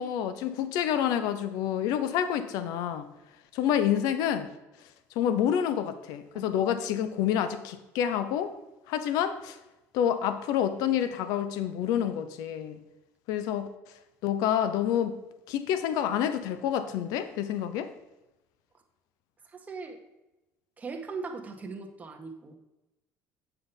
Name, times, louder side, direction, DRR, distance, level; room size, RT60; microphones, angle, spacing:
voice 1, 0.0-3.1 3.5-4.5 5.2-8.5 8.9-9.6 9.9-12.8 13.3-13.7 14.2-15.2 15.5-17.9, left 9 dB, 75° left, 11 dB, 0.7 m, -28 dB
voice 2, 19.5-20.0 20.8-22.6, right 4 dB, 25° right, 3 dB, 1.3 m, -39 dB
8.2 x 5.9 x 5.2 m, 0.99 s
cardioid pair, 105°, 6 cm